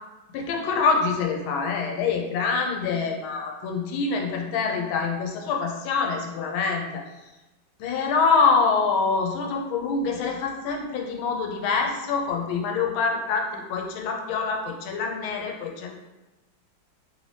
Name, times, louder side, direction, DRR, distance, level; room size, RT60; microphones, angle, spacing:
voice 1, 0.3-7.0 7.8-15.9, left 5 dB, 90° left, 2 dB, 1.4 m, -25 dB
3.3 x 2.7 x 3.2 m, 1.1 s
omnidirectional pair, 2.2 m